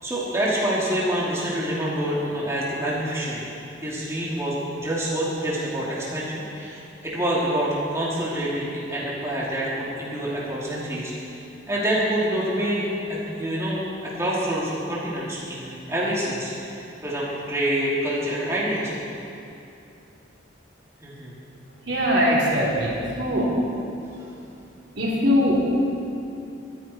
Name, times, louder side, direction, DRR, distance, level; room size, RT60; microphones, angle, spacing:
voice 1, 0.0-3.4 3.8-11.4 11.7-18.9 21.0-21.3, right 1 dB, 15° right, -7 dB, 2.8 m, -27 dB
voice 2, 21.9-23.5 25.0-25.6, equal, 70° right, -5 dB, 3.5 m, -21 dB
23.5 x 11.0 x 4.5 m, 2.8 s
head